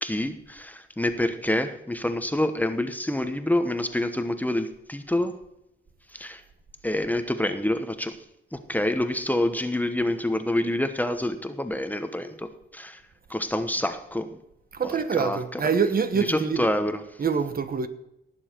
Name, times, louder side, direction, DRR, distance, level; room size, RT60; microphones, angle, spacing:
voice 1, 0.0-5.4 6.1-6.4 6.8-8.2 8.5-13.0 13.3-14.4 14.8-15.6 16.1-17.0, left 1 dB, 10° left, 1.1 m, -27 dB
voice 2, 14.7-16.7 17.2-17.9, right 6 dB, 45° right, 1.2 m, -25 dB
18.0 x 7.2 x 4.5 m
cardioid pair, 85°, 21 cm